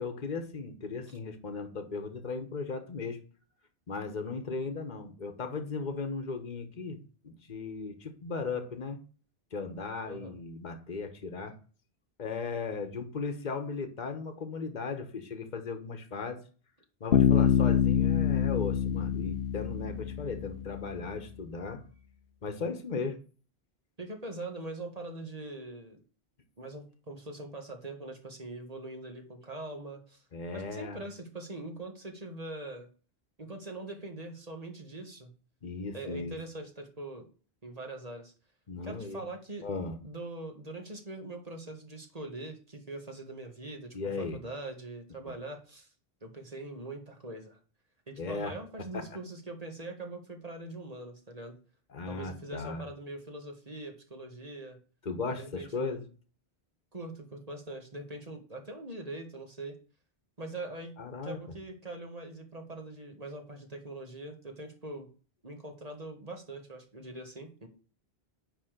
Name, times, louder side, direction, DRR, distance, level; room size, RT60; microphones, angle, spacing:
voice 1, 0.0-3.2 3.9-7.0 7.2-9.0 9.5-11.6 12.2-16.4 17.0-21.8 22.4-23.2 30.3-31.0 35.6-36.3 38.7-39.2 39.6-40.0 43.9-44.4 48.2-48.5 48.9-49.0 51.9-52.8 55.0-56.0 61.0-61.4, left 4 dB, 45° left, 7 dB, 1.3 m, -36 dB
voice 2, 10.0-10.4 24.0-26.0 26.6-30.2 30.5-32.9 33.4-35.3 35.9-37.2 37.6-38.3 38.8-39.7 40.0-45.9 46.2-47.6 48.1-51.5 52.1-54.8 55.3-56.0 56.9-59.8 60.4-60.9 61.2-65.1 65.4-67.7, right 2 dB, 40° right, 3 dB, 1.7 m, -42 dB
Bass guitar, 17.1-20.8, left 9 dB, 85° left, 1.0 m, -26 dB
9.9 x 3.4 x 6.6 m, 0.38 s
omnidirectional pair, 1.1 m